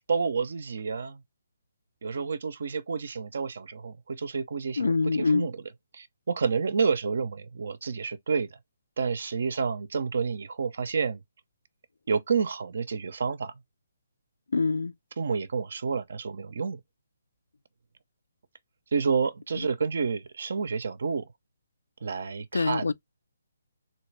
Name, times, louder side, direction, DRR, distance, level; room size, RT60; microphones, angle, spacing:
voice 1, 0.1-1.2 2.0-4.9 5.3-5.5 5.9-8.6 9.0-11.2 12.1-13.5 15.2-16.8 18.9-21.3 22.0-22.9, right 5 dB, 60° right, 0.5 m, -29 dB
voice 2, 4.8-5.5 14.5-14.9 19.6-19.7 22.5-22.9, left 4 dB, 75° left, 0.4 m, -25 dB
3.1 x 2.8 x 3.2 m
figure-of-eight pair, 140°, 0 cm